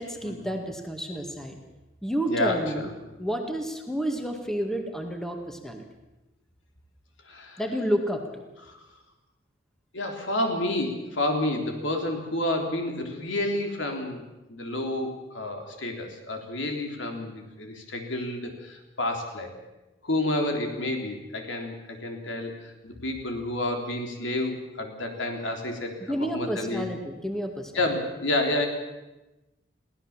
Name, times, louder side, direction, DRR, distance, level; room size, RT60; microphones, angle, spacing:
voice 1, 0.0-1.6 2.0-2.9 3.2-5.8 7.6-8.4 26.0-27.9, equal, 5° left, 3 dB, 1.9 m, -30 dB
voice 2, 2.3-2.9 7.3-7.6 8.7-8.8 9.9-14.2 14.5-19.5 20.0-22.5 22.8-26.9 27.7-28.7, left 1 dB, 70° left, 3 dB, 3.5 m, -30 dB
23.0 x 16.5 x 7.3 m, 1.0 s
head